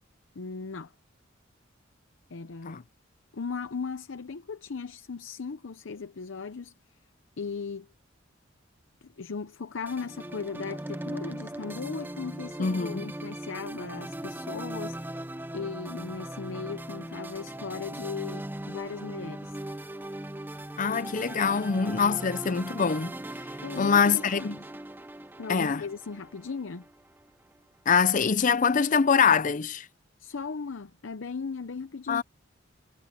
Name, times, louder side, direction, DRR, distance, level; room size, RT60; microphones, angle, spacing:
voice 1, 0.3-0.9 2.3-2.8 3.3-6.7 7.4-7.9 9.0-19.6 23.6-24.5 25.4-26.9 30.2-32.2, left 5 dB, 80° left, 0.7 m, -37 dB
sound 1, 9.9-27.2, right 1 dB, 10° right, 0.7 m, -39 dB
voice 2, 12.6-13.1 20.8-23.2 23.8-24.6 25.5-25.8 27.9-29.9 32.1-32.2, left 6 dB, 45° left, 0.5 m, -24 dB
head